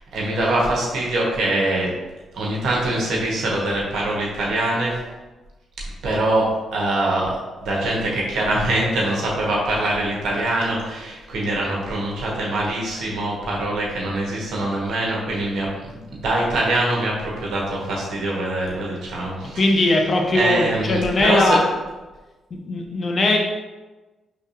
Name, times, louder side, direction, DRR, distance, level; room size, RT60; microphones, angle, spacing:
voice 1, 0.1-1.9 2.3-5.0 6.0-19.9 20.3-21.6, right 1 dB, 70° right, -3 dB, 1.3 m, -23 dB
voice 2, 19.5-21.6 22.5-23.4, left 2 dB, 50° left, 2 dB, 0.9 m, -19 dB
5.2 x 3.7 x 2.7 m, 1.2 s
hypercardioid pair, 45°, 0 cm